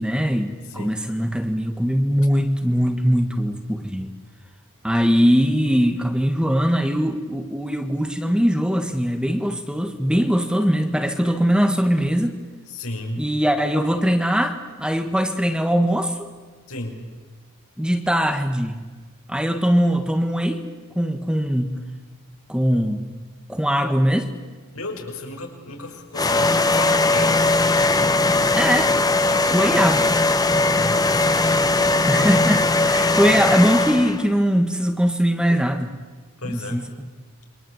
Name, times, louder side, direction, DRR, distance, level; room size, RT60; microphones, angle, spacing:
voice 1, 0.0-4.1 4.8-12.3 13.2-16.2 17.8-18.8 19.3-20.6 20.9-21.7 22.5-23.0 23.5-24.3 28.5-28.9 29.5-30.1 32.1-35.9 36.5-36.8, equal, 5° right, 6 dB, 1.6 m, -21 dB
voice 2, 0.7-1.0 12.7-13.2 16.7-17.0 24.7-27.5 29.3-29.7 30.8-31.5 36.4-36.9, left 2 dB, 75° left, 2 dB, 5.8 m, -33 dB
sound 1, 26.1-34.3, left 2 dB, 15° left, 1.2 m, -19 dB
28.0 x 24.5 x 8.1 m, 1.4 s
head